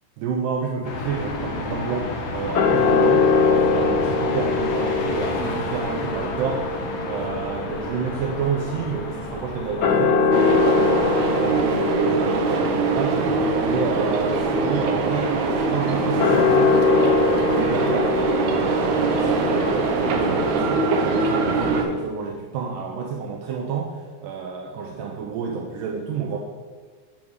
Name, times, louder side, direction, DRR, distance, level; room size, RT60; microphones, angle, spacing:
voice 1, 0.2-6.6 7.0-11.0 11.3-13.2 13.6-20.8 21.1-26.4, right 5 dB, 90° right, 0 dB, 2.3 m, -29 dB
sound 1, 0.8-20.5, left 3 dB, 65° left, 1.6 m, -33 dB
sound 2, 2.6-9.2 9.7-21.8, left 4 dB, 80° left, 1.2 m, -24 dB
sound 3, 10.3-21.8, right 3 dB, 75° right, 2.1 m, -23 dB
10.0 x 3.6 x 6.3 m, 1.5 s
omnidirectional pair, 3.7 m